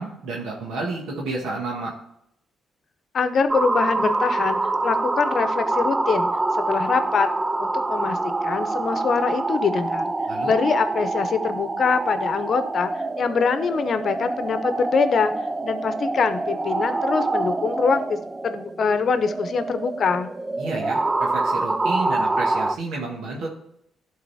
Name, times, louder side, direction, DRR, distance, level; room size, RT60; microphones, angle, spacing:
voice 1, 0.0-1.9 10.3-10.5 20.6-23.5, right 3 dB, 80° right, -2 dB, 1.5 m, -30 dB
voice 2, 3.1-6.3 6.6-7.3 7.6-10.1 10.4-15.3 15.6-18.2 18.4-20.3, left 5 dB, 50° left, 10 dB, 0.8 m, -24 dB
sound 1, 3.5-22.8, right 2 dB, 20° right, 0.3 m, -26 dB
11.0 x 4.0 x 4.2 m, 0.75 s
cardioid pair, 90°, 0 cm